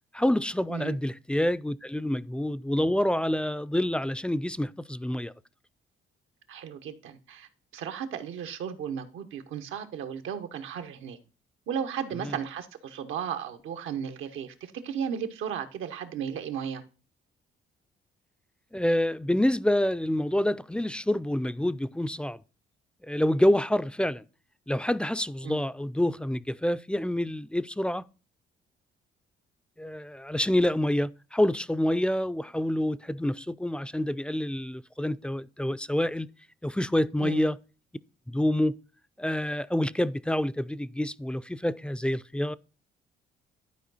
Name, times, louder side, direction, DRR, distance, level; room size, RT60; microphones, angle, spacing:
voice 1, 0.1-5.3 12.2-12.4 18.7-22.4 23.0-24.2 24.7-28.0 29.8-36.3 36.6-37.6 38.3-38.8 39.2-42.6, left 1 dB, 5° left, 0.3 m, -27 dB
voice 2, 6.5-11.2 11.7-16.8 25.4-25.6 37.2-37.5, right 8 dB, 85° right, 1.1 m, -35 dB
11.5 x 4.8 x 4.0 m
cardioid pair, 90°, 20 cm